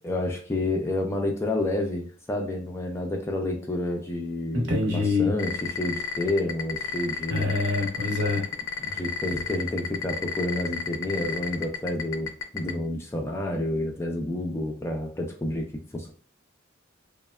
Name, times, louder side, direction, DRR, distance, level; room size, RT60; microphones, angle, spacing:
voice 1, 0.0-7.5 8.8-15.7 15.9-16.1, left 1 dB, 15° left, 1 dB, 0.3 m, -29 dB
voice 2, 4.5-5.3 7.3-8.5 8.9-9.0, left 3 dB, 60° right, 0 dB, 0.9 m, -25 dB
sound 1, 5.4-12.7, left 6 dB, 80° left, 0.4 m, -30 dB
3.2 x 2.1 x 2.2 m, 0.43 s
head